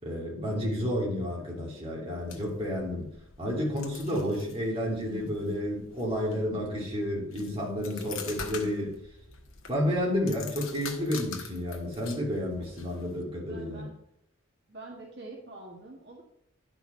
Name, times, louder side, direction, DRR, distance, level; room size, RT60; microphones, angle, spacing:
voice 1, 0.0-3.1 3.4-8.9 9.7-13.8, equal, 25° right, -4 dB, 2.9 m, -31 dB
sound 1, 2.2-13.2, left 6 dB, 70° left, 1.3 m, -46 dB
voice 2, 13.5-13.9 14.7-16.2, right 2 dB, 55° right, -2 dB, 1.8 m, -46 dB
10.5 x 6.2 x 4.5 m, 0.74 s
head